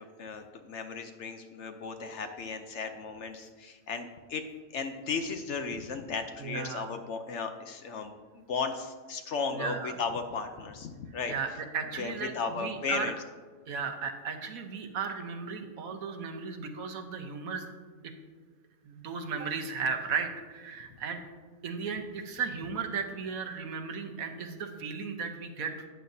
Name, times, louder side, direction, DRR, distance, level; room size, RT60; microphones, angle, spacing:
voice 1, 0.0-4.4 4.7-11.3 12.0-13.2, left 5 dB, 60° left, 7 dB, 0.9 m, -35 dB
voice 2, 6.4-6.9 9.5-9.9 11.3-13.1 13.7-17.7 18.0-18.1 18.8-21.2 21.6-25.7, right 5 dB, 75° right, 6 dB, 1.3 m, -35 dB
13.0 x 8.9 x 2.7 m, 1.4 s
omnidirectional pair, 1.5 m